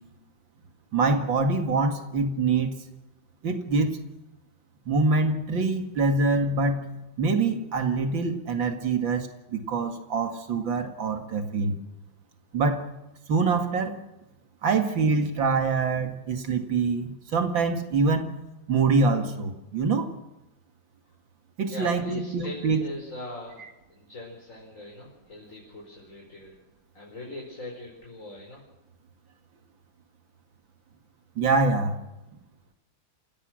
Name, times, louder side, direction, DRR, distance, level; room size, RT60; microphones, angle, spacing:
voice 1, 0.9-2.7 3.4-4.0 4.9-6.9 7.2-11.8 12.5-12.8 13.3-14.0 14.6-18.3 18.7-20.1 21.6-22.8 31.4-32.0, right 3 dB, 75° right, 6 dB, 2.8 m, -25 dB
voice 2, 21.7-23.6 23.9-26.6 26.9-28.6, left 2 dB, 40° left, -1 dB, 4.9 m, -40 dB
28.5 x 17.0 x 6.4 m, 1.0 s
omnidirectional pair, 2.1 m